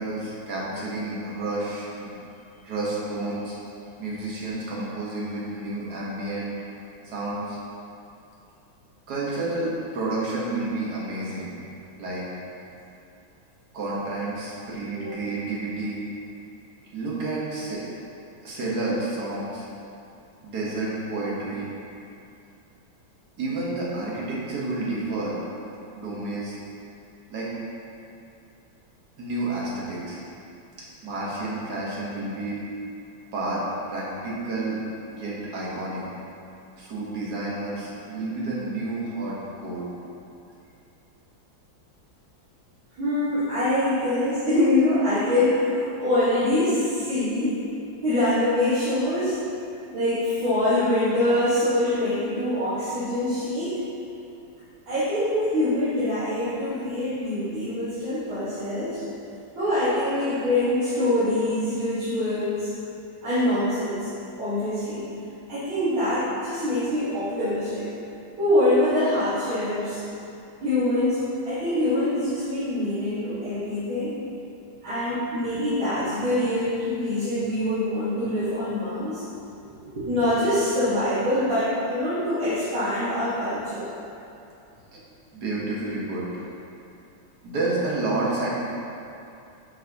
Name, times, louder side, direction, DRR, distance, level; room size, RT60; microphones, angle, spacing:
voice 1, 0.0-2.1 2.6-3.6 4.0-6.5 7.0-7.6 9.1-11.5 12.0-12.3 13.7-16.0 16.9-17.8 18.4-19.6 20.4-21.7 23.4-25.4 25.9-26.6 27.3-27.5 29.2-30.2 31.0-32.6 33.3-34.8 35.1-36.1 36.8-39.9 79.6-80.1 84.9-85.0 85.3-86.3 87.4-88.5, right 2 dB, 55° right, -6 dB, 1.8 m, -30 dB
voice 2, 43.0-47.6 48.0-49.4 49.9-53.8 54.9-59.0 59.6-62.7 63.2-64.1 64.4-65.0 65.5-67.9 68.4-70.0 70.6-74.2 74.8-79.2 80.1-83.9, left 1 dB, 75° right, -16 dB, 2.6 m, -24 dB
7.7 x 5.8 x 2.9 m, 2.7 s
omnidirectional pair, 2.2 m